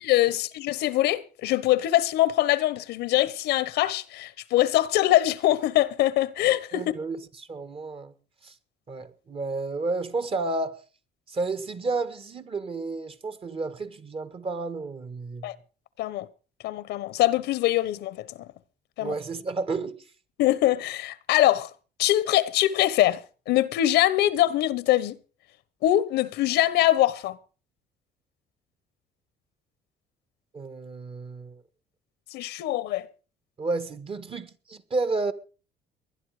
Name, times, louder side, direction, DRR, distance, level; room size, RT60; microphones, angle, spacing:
voice 1, 0.0-6.9 15.4-15.6 16.0-16.3 16.6-18.5 19.0-19.2 20.4-21.7 22.0-23.2 23.5-25.2 25.8-27.4 32.3-33.1, left 14 dB, 80° left, 1.1 m, -23 dB
voice 2, 6.7-8.1 8.4-8.5 8.9-10.8 11.3-15.5 19.0-20.0 30.5-31.6 33.6-35.3, right 3 dB, 35° right, 1.6 m, -31 dB
20.0 x 11.0 x 4.9 m
cardioid pair, 110°, 17 cm